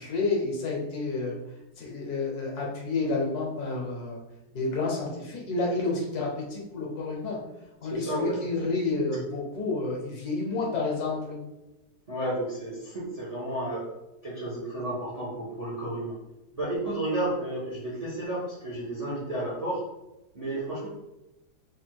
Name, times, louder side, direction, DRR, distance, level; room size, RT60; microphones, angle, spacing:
voice 1, 0.0-1.4 1.8-4.2 4.5-7.4 7.8-11.4, left 3 dB, 65° left, -2 dB, 1.3 m, -30 dB
voice 2, 7.9-8.3 12.1-13.8 14.2-16.1 16.5-19.8 20.3-20.9, right 1 dB, 35° right, -6 dB, 0.6 m, -32 dB
3.4 x 2.3 x 4.4 m, 0.97 s
omnidirectional pair, 1.9 m